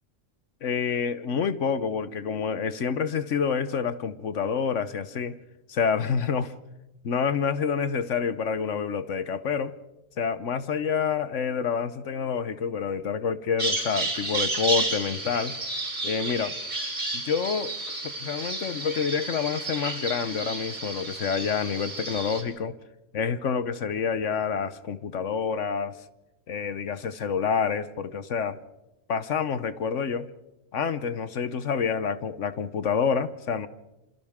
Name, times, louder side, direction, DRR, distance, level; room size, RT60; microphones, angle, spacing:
voice 1, 0.6-5.3 5.7-6.5 7.0-9.7 10.2-15.6 16.0-16.5 17.1-17.7 18.0-22.7 23.1-26.0 26.5-28.6 29.1-30.3 30.7-33.7, left 6 dB, 70° left, 13 dB, 1.2 m, -28 dB
Bird vocalization bird call bird song, 13.6-22.4, right 2 dB, 60° right, 5.2 m, -31 dB
27.5 x 27.5 x 3.6 m, 0.98 s
omnidirectional pair, 1.3 m